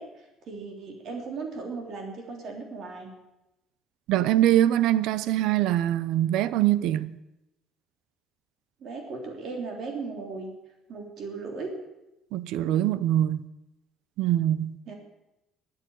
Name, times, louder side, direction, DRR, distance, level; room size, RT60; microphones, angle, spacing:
voice 1, 0.0-3.1 8.8-10.5 10.9-11.7 14.9-15.0, right 4 dB, 45° right, 3.2 m, -37 dB
voice 2, 4.1-7.2 12.3-13.4 14.2-14.8, right 12 dB, 70° right, 0.7 m, -23 dB
13.0 x 9.0 x 9.9 m
cardioid pair, 160°, 0 cm